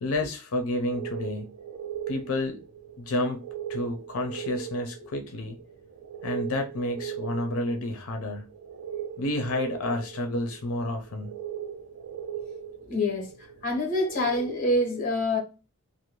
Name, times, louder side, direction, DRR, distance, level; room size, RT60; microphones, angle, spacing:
voice 1, 0.0-1.5 2.1-2.6 3.0-3.4 3.7-5.6 6.2-8.5 9.2-11.4, left 1 dB, 85° left, 0.5 m, -30 dB
sound 1, 0.9-14.8, right 8 dB, 85° right, 0.4 m, -39 dB
voice 2, 12.9-13.3 13.6-15.4, left 1 dB, 40° left, 0.9 m, -26 dB
2.5 x 2.0 x 2.9 m
head